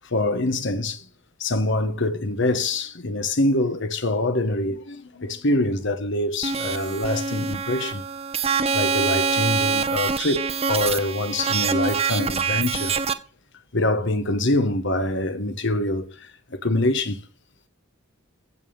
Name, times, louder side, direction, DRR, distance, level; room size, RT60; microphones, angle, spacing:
voice 1, 0.0-1.0 1.4-8.0 8.7-12.9 13.7-17.2, left 1 dB, 60° left, 1.3 m, -25 dB
sound 1, 6.4-13.1, right 5 dB, 30° right, 0.8 m, -25 dB
15.5 x 5.3 x 7.3 m
head